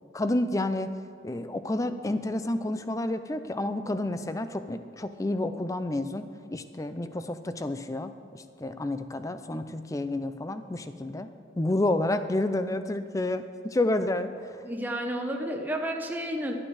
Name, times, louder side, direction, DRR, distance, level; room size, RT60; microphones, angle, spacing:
voice 1, 0.1-0.9 1.2-6.2 6.5-11.3 11.6-14.6, left 1 dB, 15° left, 10 dB, 0.4 m, -30 dB
voice 2, 14.6-16.5, right 1 dB, 10° right, 2 dB, 0.8 m, -31 dB
12.5 x 8.7 x 4.8 m, 2.5 s
head